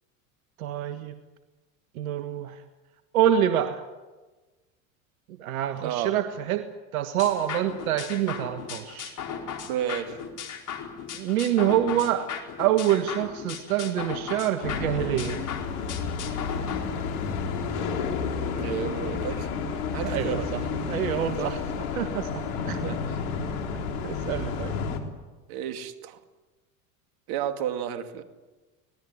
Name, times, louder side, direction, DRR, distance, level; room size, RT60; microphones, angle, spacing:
voice 1, 0.6-1.1 1.9-2.6 3.1-3.8 5.4-9.2 11.1-12.3 12.6-15.4 20.1-20.6 20.9-21.6 22.0-22.8 24.0-24.7, right 10 dB, 85° right, 8 dB, 1.5 m, -26 dB
voice 2, 5.8-6.1 9.7-10.2 18.5-19.5 19.9-20.5 21.4-21.6 22.8-23.2 25.5-26.2 27.3-28.2, right 10 dB, 65° right, 8 dB, 2.6 m, -31 dB
sound 1, 7.2-16.8, left 7 dB, 45° left, 4.6 m, -37 dB
sound 2, 14.6-25.0, left 5 dB, 80° left, 3.7 m, -31 dB
25.5 x 18.5 x 9.7 m, 1.2 s
hypercardioid pair, 90°, 42 cm